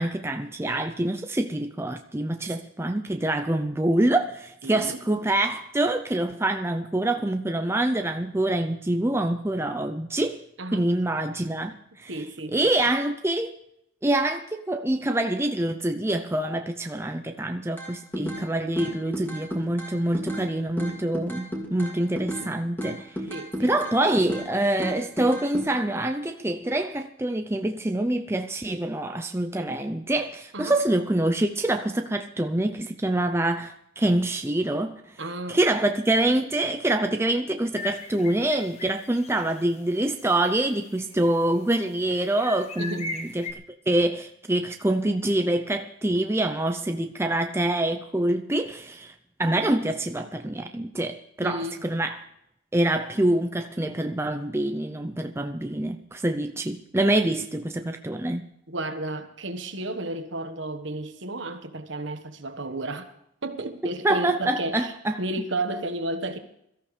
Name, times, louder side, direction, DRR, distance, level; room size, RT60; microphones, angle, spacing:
voice 1, 0.0-10.4 10.7-11.7 12.0-12.2 12.5-13.5 14.0-23.3 23.6-35.1 35.5-43.5 43.9-49.1 49.4-52.2 52.7-58.5 64.0-65.2, right 1 dB, 10° right, 0.5 m, -25 dB
voice 2, 4.6-5.0 10.6-10.8 12.1-12.6 23.3-23.9 30.5-30.7 35.2-35.6 42.8-43.1 51.4-51.8 58.7-63.1 63.4-64.9 65.2-66.4, right 2 dB, 65° right, 1.4 m, -32 dB
sound 1, 17.8-18.5 18.8-20.5 20.8-22.5 22.8-24.5 24.8-25.7, equal, 10° left, 2.4 m, -33 dB
sound 2, 37.7-39.6 40.0-40.1 40.6-41.4 42.0-43.5, left 3 dB, 30° left, 1.1 m, -38 dB
22.0 x 14.0 x 3.3 m
head